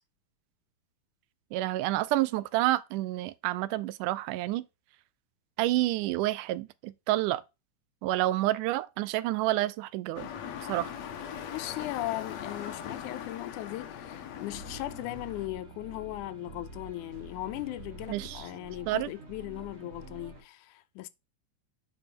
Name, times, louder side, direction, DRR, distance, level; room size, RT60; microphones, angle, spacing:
voice 1, 1.5-4.7 5.6-7.4 8.0-10.3 10.7-10.9 18.1-18.4 18.9-19.1, right 16 dB, 90° right, 2.1 m, -29 dB
sound 1, 10.2-15.5, left 8 dB, 70° left, 2.2 m, -40 dB
voice 2, 11.5-21.1, left 16 dB, 85° left, 2.1 m, -38 dB
sound 2, 14.5-20.4, right 2 dB, 40° right, 0.9 m, -47 dB
8.7 x 4.4 x 4.4 m
omnidirectional pair, 3.5 m